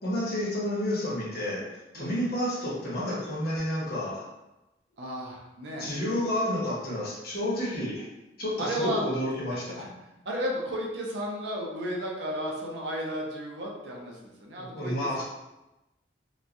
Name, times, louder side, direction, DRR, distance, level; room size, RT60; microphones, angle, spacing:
voice 1, 0.0-4.2 5.8-8.1 8.4-9.8 14.6-15.2, left 1 dB, 60° left, -6 dB, 1.0 m, -30 dB
voice 2, 5.0-5.9 8.6-9.0 9.5-9.9 10.3-15.2, equal, 75° right, -2 dB, 0.6 m, -33 dB
3.0 x 2.2 x 2.5 m, 0.97 s
head